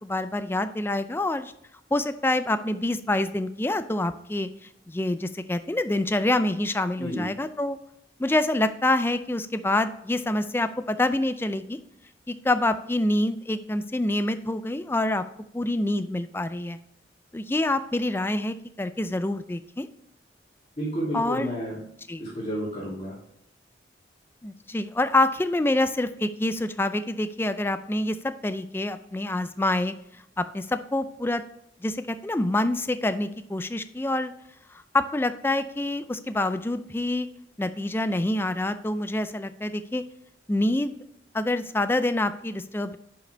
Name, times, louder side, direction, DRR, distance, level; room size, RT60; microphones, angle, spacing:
voice 1, 0.0-1.5 1.9-4.5 4.9-7.8 8.2-11.8 12.3-15.2 15.5-16.8 17.3-19.9 21.1-21.5 22.1-22.2 24.4-29.9 30.4-31.4 31.8-34.3 34.9-37.3 37.6-40.0 40.5-40.9 41.3-43.0, left 1 dB, 15° left, 11 dB, 0.4 m, -26 dB
voice 2, 20.8-21.8 22.2-23.1, equal, 35° left, -7 dB, 2.7 m, -31 dB
10.5 x 5.0 x 3.4 m, 0.75 s
head